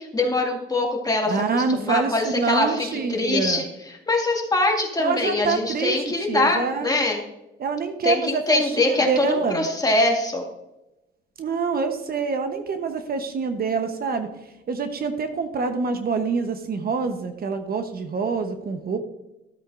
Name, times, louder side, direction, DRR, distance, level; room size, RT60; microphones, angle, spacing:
voice 1, 0.0-7.2 8.0-10.4, left 2 dB, 20° left, 0 dB, 2.1 m, -23 dB
voice 2, 1.3-3.6 5.0-7.0 7.6-9.7 11.4-14.3 14.7-19.0, right 4 dB, 50° right, 7 dB, 0.9 m, -26 dB
13.5 x 8.1 x 2.5 m, 0.95 s
cardioid pair, 90°, 20 cm